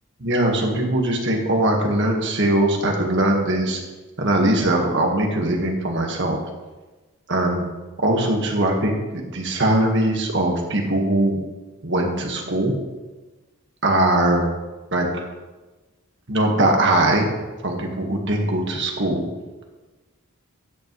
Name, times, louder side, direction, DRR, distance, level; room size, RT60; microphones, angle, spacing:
voice 1, 0.2-3.8 4.2-6.4 7.3-7.6 8.0-11.4 11.8-12.7 13.8-14.5 14.9-15.1 16.3-17.3 17.6-19.2, right 1 dB, 55° right, 1 dB, 1.6 m, -21 dB
12.5 x 8.3 x 3.2 m, 1.2 s
head